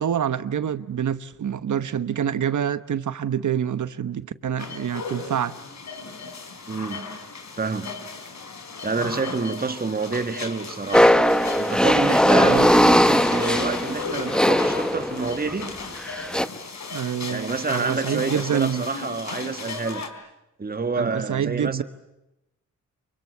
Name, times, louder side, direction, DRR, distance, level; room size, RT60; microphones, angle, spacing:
voice 1, 0.0-5.5 12.4-12.7 16.9-18.8 21.0-21.8, right 8 dB, 75° right, 1.1 m, -26 dB
sound 1, 4.6-20.1, left 4 dB, 65° left, 3.8 m, -36 dB
voice 2, 6.7-7.1 7.6-7.9 8.8-11.2 11.6-15.8 17.3-20.1 20.6-21.8, right 4 dB, 30° right, 1.6 m, -28 dB
sound 2, 10.9-15.4 16.1-16.5, equal, 5° left, 1.2 m, -18 dB
28.0 x 24.5 x 8.0 m
wide cardioid pair, 85°, 31 cm